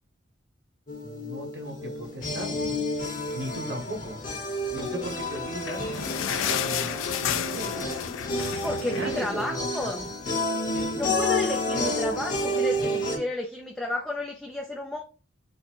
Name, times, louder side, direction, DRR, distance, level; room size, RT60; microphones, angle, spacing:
sound 1, 0.9-13.2, left 1 dB, 45° left, 1.1 m, -30 dB
voice 1, 1.0-2.7 3.3-4.2 4.7-5.9 6.3-7.8 8.9-10.0, right 1 dB, 70° right, 1.3 m, -37 dB
sound 2, 5.2-10.0 10.3-10.4 10.7-10.9 11.5-11.6, left 9 dB, 85° left, 0.4 m, -32 dB
voice 2, 8.6-10.1 11.0-15.0, left 1 dB, 5° left, 0.4 m, -32 dB
4.0 x 2.2 x 4.4 m
head